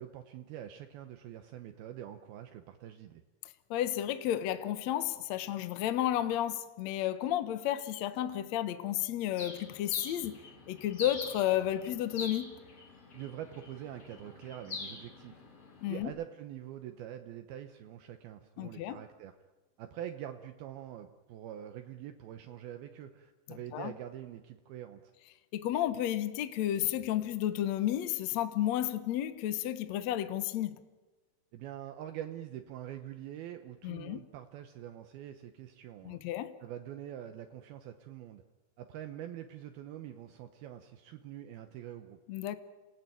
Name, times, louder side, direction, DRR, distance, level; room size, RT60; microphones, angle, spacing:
voice 1, 0.0-3.2 13.1-15.4 15.9-19.4 19.8-25.1 31.5-36.2 36.6-38.4 38.8-42.2, right 11 dB, 75° right, 2.7 m, -45 dB
voice 2, 3.7-10.4 10.7-12.5 15.8-16.1 18.6-19.0 23.5-23.9 25.5-30.8 33.8-34.2 36.0-36.5 42.3-42.6, left 12 dB, 75° left, 1.6 m, -32 dB
Bird, 9.3-16.0, left 3 dB, 40° left, 4.8 m, -45 dB
28.0 x 18.5 x 9.2 m
omnidirectional pair, 4.7 m